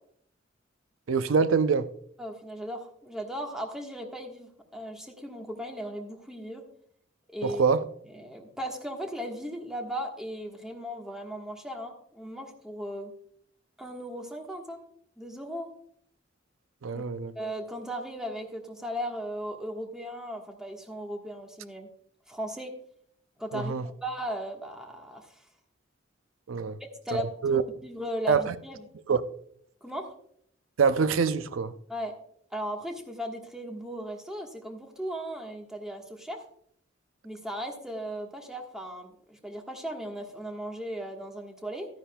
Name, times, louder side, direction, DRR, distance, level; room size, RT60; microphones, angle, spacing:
voice 1, 1.1-1.9 7.4-7.8 16.8-17.3 23.5-23.9 26.5-26.8 27.1-27.6 28.3-28.5 29.1-29.2 30.8-31.7, right 5 dB, 90° right, 0.5 m, -25 dB
voice 2, 2.2-6.6 7.3-7.6 8.1-13.1 13.8-14.8 15.2-15.7 16.9-17.0 17.3-21.9 22.3-22.7 23.4-25.3 27.0-28.8 29.8-30.1 31.9-32.1 32.5-36.4 37.2-41.9, equal, 5° right, 1.3 m, -37 dB
13.0 x 10.0 x 2.3 m
head